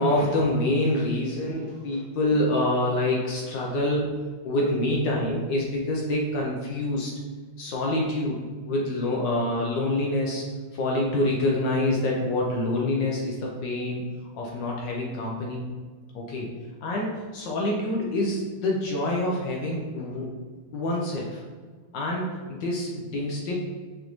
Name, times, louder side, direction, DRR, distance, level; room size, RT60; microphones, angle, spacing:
voice 1, 0.0-4.1 4.4-7.1 7.6-8.4 8.7-10.4 10.7-14.0 14.3-15.6 16.1-16.5 16.8-20.3 20.7-21.4 21.9-23.5, left 1 dB, 70° left, -2 dB, 1.2 m, -26 dB
5.0 x 2.5 x 3.0 m, 1.5 s
omnidirectional pair, 2.3 m